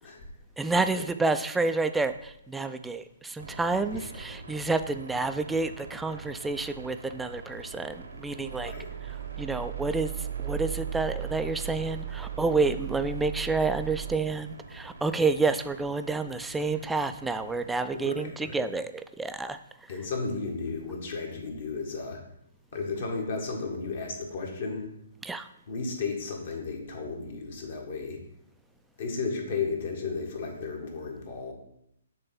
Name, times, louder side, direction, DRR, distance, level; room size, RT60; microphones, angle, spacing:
voice 1, 0.6-8.7 9.4-19.6 25.2-25.5, right 3 dB, 5° right, 9 dB, 0.3 m, -29 dB
sound 1, 3.4-17.9, right 3 dB, 80° right, 1.0 m, -46 dB
sound 2, 8.4-14.2, right 12 dB, 50° right, 0.7 m, -36 dB
voice 2, 17.9-18.6 19.9-22.2 22.7-24.8 25.7-28.2 29.0-31.5, left 4 dB, 55° left, 1 dB, 1.7 m, -34 dB
6.6 x 3.4 x 5.9 m, 0.77 s
figure-of-eight pair, 130°, 0 cm